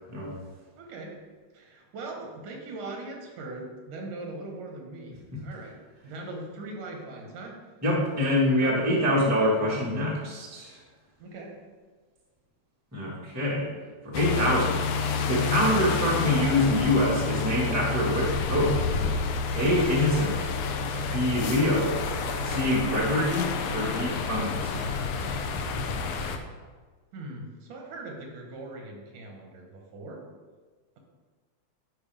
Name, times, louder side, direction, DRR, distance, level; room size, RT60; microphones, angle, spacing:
voice 1, 0.8-1.1 1.5-5.7 6.0-7.6 8.6-8.8 11.2-11.5 27.1-30.2, right 2 dB, 85° right, 1 dB, 2.8 m, -40 dB
voice 2, 7.8-10.8 12.9-13.7 14.0-14.8 15.3-18.8 19.5-20.5 21.1-22.0 22.4-24.8, left 1 dB, 10° right, -5 dB, 0.7 m, -25 dB
sound 1, 14.1-26.4, left 4 dB, 75° left, 1.5 m, -29 dB
11.5 x 4.6 x 3.4 m, 1.4 s
omnidirectional pair, 3.4 m